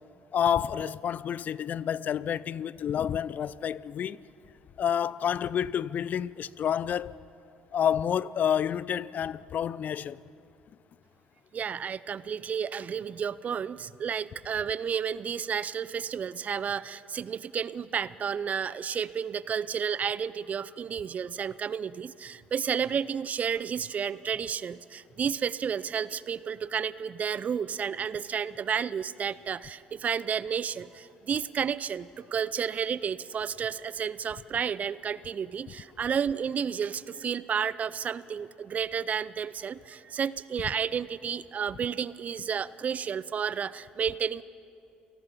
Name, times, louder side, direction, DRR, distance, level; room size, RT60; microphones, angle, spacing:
voice 1, 0.3-4.2 4.8-7.2 7.7-10.2, left 9 dB, 50° left, 0.5 m, -29 dB
voice 2, 11.5-44.4, right 7 dB, 45° right, 0.6 m, -31 dB
28.5 x 18.5 x 5.6 m
hypercardioid pair, 65°, 4 cm